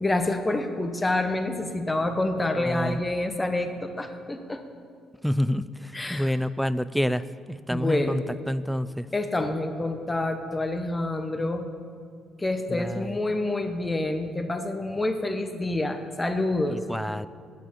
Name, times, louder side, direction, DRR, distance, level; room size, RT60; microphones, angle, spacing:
voice 1, 0.0-4.6 5.9-6.3 7.7-8.2 9.1-11.7 12.4-16.8, left 2 dB, 20° left, 6 dB, 1.1 m, -27 dB
voice 2, 2.6-3.0 5.2-5.7 6.1-7.2 7.5-8.2 8.5-9.1 12.7-13.2 16.7-17.3, equal, ahead, 15 dB, 0.4 m, -27 dB
9.4 x 9.1 x 8.6 m, 2.2 s
cardioid pair, 80°, 0 cm